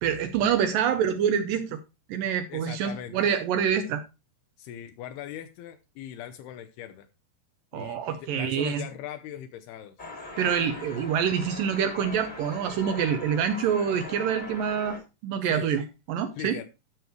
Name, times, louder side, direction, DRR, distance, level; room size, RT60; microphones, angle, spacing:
voice 1, 0.0-1.8 2.1-4.0 7.7-8.8 10.4-15.0 15.2-16.6, right 8 dB, 80° right, 2.1 m, -26 dB
voice 2, 2.5-3.2 4.6-7.1 7.7-10.0 15.4-15.7 16.4-16.7, left 11 dB, 80° left, 2.6 m, -40 dB
sound 1, 10.0-15.0, left 2 dB, 20° left, 1.3 m, -40 dB
12.5 x 6.4 x 3.1 m
omnidirectional pair, 4.7 m